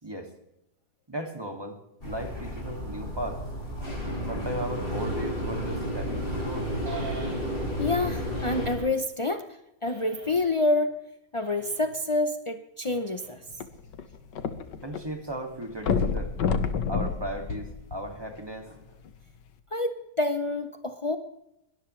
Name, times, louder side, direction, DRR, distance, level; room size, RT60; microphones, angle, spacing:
voice 1, 1.1-3.4 4.3-6.7 14.8-16.4 16.9-19.0, right 1 dB, 15° right, 3 dB, 2.3 m, -36 dB
sound 1, 2.0-8.8, equal, 30° left, 4.7 m, -32 dB
sound 2, 6.9-7.8 8.3-9.0 9.8-10.6 11.3-12.0 12.8-13.6, right 3 dB, 75° right, 4.6 m, -43 dB
voice 2, 7.8-11.0 11.3-13.4 19.7-21.2, left 2 dB, 45° left, 7 dB, 0.4 m, -28 dB
sound 3, 13.5-15.0 15.3-15.4 15.8-18.4 19.1-19.2, left 6 dB, 85° left, 1.8 m, -28 dB
22.5 x 19.0 x 3.3 m, 0.87 s
omnidirectional pair, 1.9 m